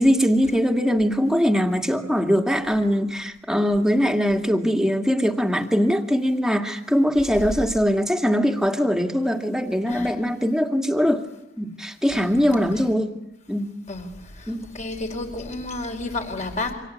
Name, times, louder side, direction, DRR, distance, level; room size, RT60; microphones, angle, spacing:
voice 1, 0.0-11.2 11.6-13.2 13.5-13.7 14.5-14.7, equal, 5° right, 2.1 m, -21 dB
voice 2, 14.7-16.7, left 2 dB, 40° left, 4.6 m, -31 dB
27.5 x 25.5 x 8.4 m
head